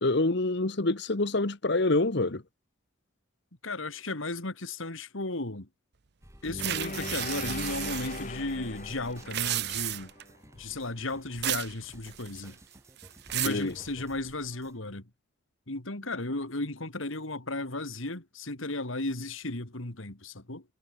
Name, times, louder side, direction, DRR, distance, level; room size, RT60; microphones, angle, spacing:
voice 1, 0.0-2.4 13.4-13.7, left 2 dB, 55° left, 1.2 m, -26 dB
voice 2, 3.6-5.7 6.4-10.1 10.5-12.6 13.3-15.1 15.7-20.6, left 2 dB, 75° left, 2.8 m, -35 dB
sound 1, 6.2-14.8, equal, 15° right, 4.9 m, -50 dB
sound 2, 6.4-10.7, left 2 dB, 40° left, 2.4 m, -40 dB
sound 3, 6.6-8.2 9.2-10.2 11.4-11.7 12.1-12.5 13.0-13.6, right 14 dB, 55° right, 0.6 m, -33 dB
head